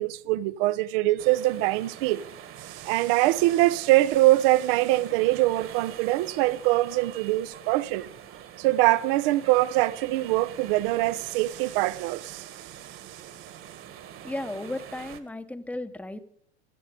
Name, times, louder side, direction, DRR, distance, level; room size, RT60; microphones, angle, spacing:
voice 1, 0.0-2.3 2.6-8.1 8.6-12.5, right 17 dB, 60° right, 0.9 m, -23 dB
sound 1, 1.2-15.2, right 10 dB, 40° right, 1.8 m, -44 dB
voice 2, 14.2-16.2, left 1 dB, 5° left, 1.0 m, -34 dB
16.5 x 12.5 x 5.2 m
hypercardioid pair, 100°, 32 cm